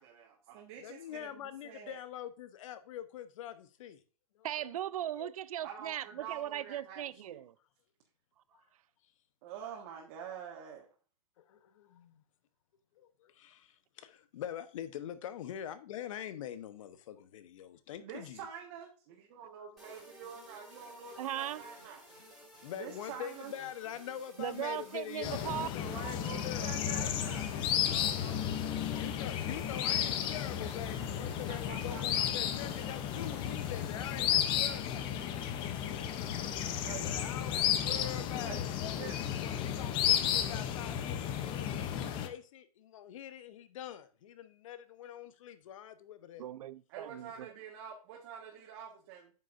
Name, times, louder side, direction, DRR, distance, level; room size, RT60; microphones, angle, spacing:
voice 1, 0.0-2.0 5.6-7.4 9.4-10.9 18.0-22.1 22.7-23.5 25.8-28.4 31.5-32.3 36.8-37.2 38.4-38.6 39.0-39.2 41.4-42.2 46.9-49.3, right 8 dB, 40° right, 1.6 m, -47 dB
voice 2, 0.8-4.0 4.3-4.7 5.2-5.3 11.4-12.2 13.0-18.4 22.6-27.2 28.8-35.1 37.0-46.4, left 10 dB, 55° left, 1.0 m, -44 dB
voice 3, 4.4-7.5 21.2-21.6 24.4-25.7 46.4-47.5, right 11 dB, 65° right, 0.6 m, -38 dB
sound 1, 19.8-34.5, equal, ahead, 3.5 m, -55 dB
sound 2, 25.2-42.3, left 10 dB, 25° left, 0.7 m, -33 dB
8.9 x 6.6 x 2.6 m
hypercardioid pair, 145°, 20 cm